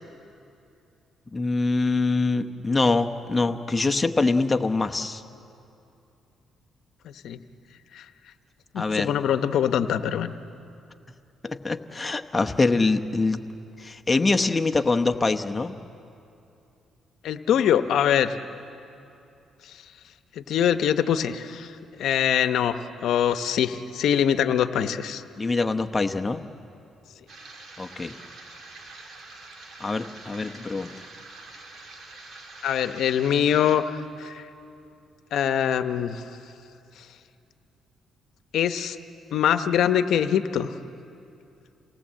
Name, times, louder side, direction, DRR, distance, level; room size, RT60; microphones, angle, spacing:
voice 1, 1.3-5.2 8.8-9.1 11.4-13.4 13.8-15.7 25.4-26.4 27.8-28.2 29.8-30.9, left 3 dB, 20° left, 5 dB, 0.9 m, -24 dB
voice 2, 7.0-7.4 7.9-8.0 8.7-10.3 17.2-18.3 20.4-21.7 22.0-22.7 23.0-25.2 32.6-34.4 35.3-36.2 38.5-39.0 39.3-40.8, left 9 dB, 75° left, 10 dB, 0.8 m, -23 dB
sound 1, 27.3-33.7, right 2 dB, 55° right, 3.3 m, -45 dB
28.0 x 18.5 x 7.6 m, 2.7 s
cardioid pair, 90°, 0 cm